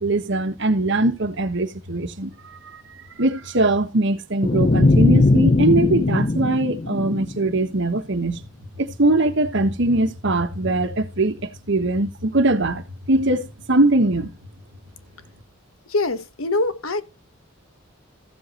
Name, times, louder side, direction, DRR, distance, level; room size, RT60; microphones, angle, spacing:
voice 1, 0.0-2.8 3.2-8.4 8.7-14.3, right 2 dB, 60° right, 1.4 m, -21 dB
sound 1, 4.4-7.7, left 2 dB, 30° left, 0.5 m, -19 dB
voice 2, 15.9-17.0, left 2 dB, 90° left, 1.3 m, -23 dB
15.0 x 7.9 x 3.0 m
head